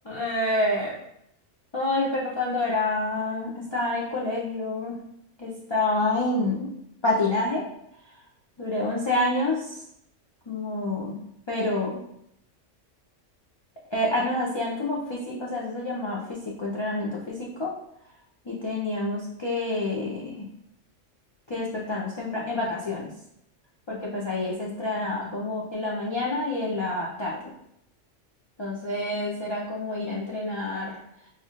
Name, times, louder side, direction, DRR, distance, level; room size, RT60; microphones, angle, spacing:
voice 1, 0.0-0.9 1.7-5.0 5.4-6.7 7.0-7.7 8.6-9.7 10.5-11.2 11.5-12.0 13.9-17.7 18.5-20.4 21.5-23.1 23.9-27.5 28.6-30.9, left 2 dB, 40° left, -5 dB, 0.4 m, -28 dB
5.6 x 2.9 x 2.4 m, 0.77 s
omnidirectional pair, 1.3 m